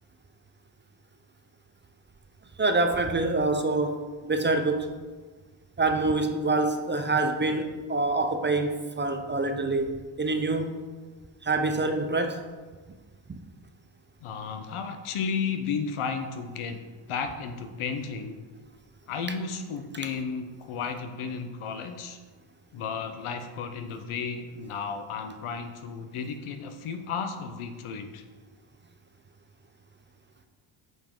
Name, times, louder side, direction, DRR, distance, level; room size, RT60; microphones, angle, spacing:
voice 1, 2.6-4.9 5.8-10.8 11.4-12.5 13.3-13.4, right 2 dB, 25° right, 7 dB, 0.5 m, -26 dB
voice 2, 14.2-16.8 17.1-18.4 19.1-22.2 22.7-28.2, left 5 dB, 80° left, 8 dB, 0.9 m, -33 dB
9.2 x 5.6 x 3.8 m, 1.4 s
cardioid pair, 115°, 49 cm